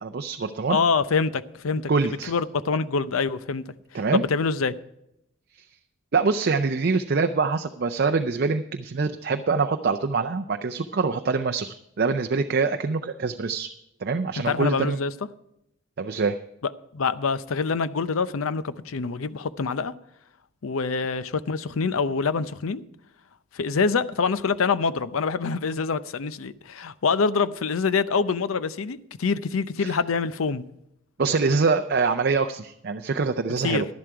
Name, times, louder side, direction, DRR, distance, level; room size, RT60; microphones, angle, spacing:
voice 1, 0.0-0.8 1.9-2.3 3.9-4.2 6.1-13.7 14.0-15.0 16.0-16.4 29.8-29.9 31.2-33.9, right 4 dB, 50° right, 0.5 m, -24 dB
voice 2, 0.7-3.6 4.1-4.7 14.5-15.1 16.9-19.9 20.6-22.8 23.5-30.6 33.6-33.8, left 5 dB, 85° left, 0.6 m, -25 dB
11.5 x 11.0 x 4.7 m
head